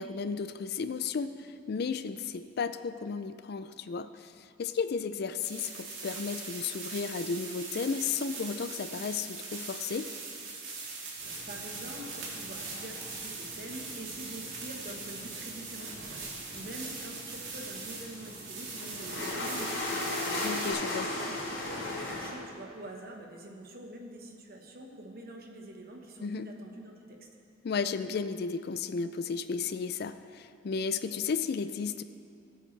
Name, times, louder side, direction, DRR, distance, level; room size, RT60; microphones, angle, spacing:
voice 1, 0.0-10.1 20.4-21.1 26.2-26.5 27.6-32.0, left 5 dB, 55° left, 11 dB, 0.4 m, -34 dB
sound 1, 5.4-20.7, right 4 dB, 80° right, 2.6 m, -41 dB
sound 2, 11.2-22.3, left 2 dB, 75° left, 3.0 m, -39 dB
voice 2, 11.2-20.5 20.8-27.2, right 1 dB, 50° right, 1 dB, 1.3 m, -46 dB
18.0 x 7.8 x 3.3 m, 2.4 s
head